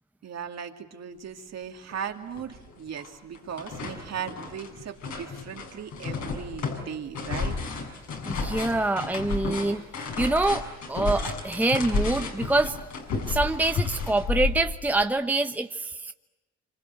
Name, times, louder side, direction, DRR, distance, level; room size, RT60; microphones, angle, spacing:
voice 1, 0.2-7.6, right 8 dB, 60° right, 4 dB, 2.6 m, -37 dB
sound 1, 1.9-2.0 2.4-3.1 3.3-15.0, left 4 dB, 70° left, 6.4 m, -32 dB
voice 2, 8.2-9.8 10.2-10.6 10.9-12.8 13.3-16.1, right 2 dB, 5° right, 7 dB, 1.0 m, -25 dB
26.5 x 26.0 x 8.1 m, 1.0 s
cardioid pair, 90°, 30 cm